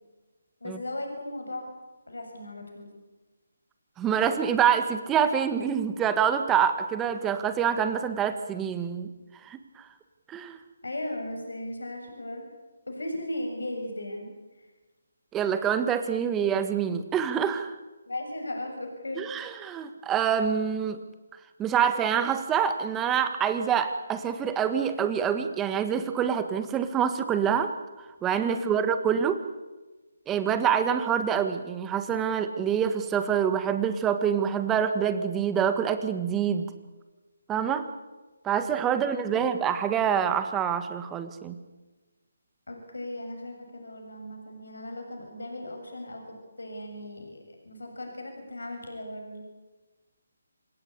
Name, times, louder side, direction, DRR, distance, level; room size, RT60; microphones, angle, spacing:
voice 1, 0.6-1.7 2.1-2.9 10.8-12.5 12.9-14.3 18.1-19.2 28.5-28.9 39.2-39.5 42.7-49.4, left 1 dB, 85° left, 3 dB, 7.2 m, -37 dB
voice 2, 4.0-9.1 9.4-9.6 10.3-10.6 15.3-17.7 19.1-21.0 21.6-27.7 28.2-29.4 30.3-36.7 37.5-37.9 38.4-41.6, right 8 dB, 10° right, 9 dB, 1.7 m, -26 dB
27.0 x 17.5 x 8.7 m, 1.2 s
figure-of-eight pair, 155°, 0 cm